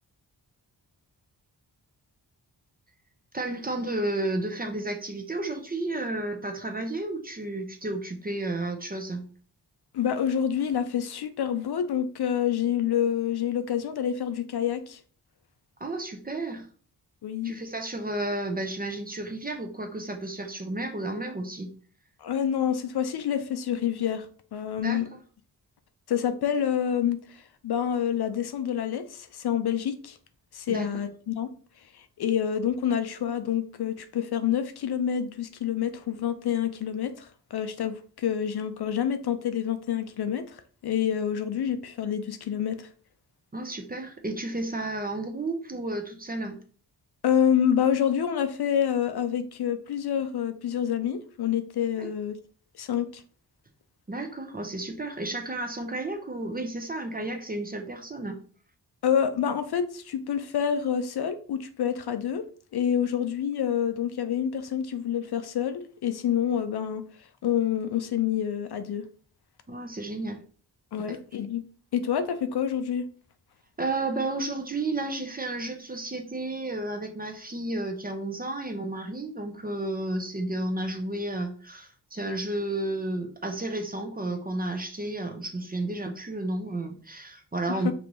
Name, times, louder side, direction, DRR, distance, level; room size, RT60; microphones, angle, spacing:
voice 1, 3.3-9.2 15.8-16.7 17.4-21.7 24.8-25.2 30.7-30.9 43.5-46.6 51.9-52.1 54.1-58.4 69.7-70.4 71.1-71.2 73.8-87.9, right 2 dB, 20° right, 0.6 m, -32 dB
voice 2, 9.9-15.0 17.2-17.5 22.2-24.3 24.5-25.1 26.1-30.2 30.5-31.5 31.9-42.9 47.2-52.4 52.8-53.2 59.0-62.5 62.7-67.0 67.4-69.0 70.9-71.6 71.9-73.0 87.7-87.8, left 9 dB, 70° left, 0.5 m, -27 dB
5.2 x 2.5 x 3.0 m
wide cardioid pair, 120°, 41 cm